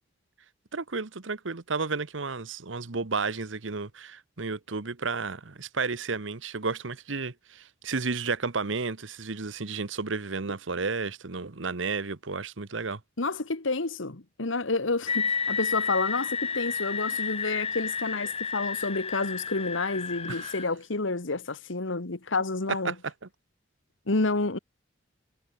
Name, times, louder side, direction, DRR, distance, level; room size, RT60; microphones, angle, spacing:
voice 1, 0.7-13.0 20.3-20.5 22.7-23.1, right 4 dB, 75° right, 1.2 m, -32 dB
voice 2, 13.2-22.9 24.1-24.6, left 3 dB, 80° left, 1.5 m, -29 dB
sound 1, 15.1-20.6, left 5 dB, 30° left, 2.6 m, -31 dB
head